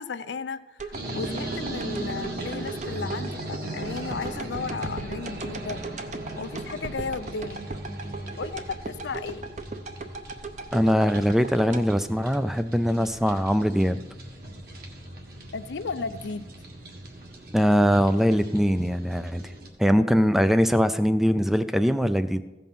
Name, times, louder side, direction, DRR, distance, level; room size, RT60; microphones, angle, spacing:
voice 1, 0.0-5.8 6.4-7.7 8.4-9.4 15.5-16.5, left 4 dB, 80° left, 12 dB, 0.5 m, -34 dB
sound 1, 0.8-13.0 13.4-13.5, right 3 dB, 40° right, 0.7 m, -38 dB
sound 2, 0.9-19.7, right 1 dB, 60° right, 1.7 m, -38 dB
voice 2, 10.7-14.0 17.5-19.4 19.8-22.4, equal, ahead, 11 dB, 0.3 m, -22 dB
15.0 x 5.4 x 5.9 m, 1.1 s
head